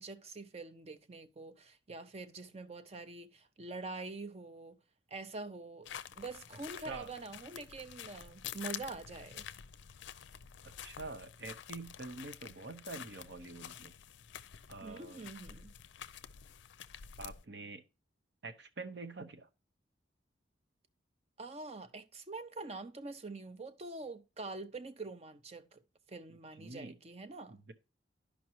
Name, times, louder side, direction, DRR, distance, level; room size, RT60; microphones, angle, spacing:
voice 1, 0.0-4.8 5.1-5.9 6.2-9.5 14.8-15.7 21.4-25.8 26.1-27.6, right 3 dB, 35° right, 0.5 m, -45 dB
sound 1, 5.8-17.4, left 9 dB, 75° left, 0.4 m, -49 dB
voice 2, 10.6-13.9 14.7-15.2 17.2-17.8 18.4-19.5 26.6-26.9 27.7-27.8, right 3 dB, 65° right, 0.8 m, -46 dB
12.5 x 5.2 x 2.9 m
head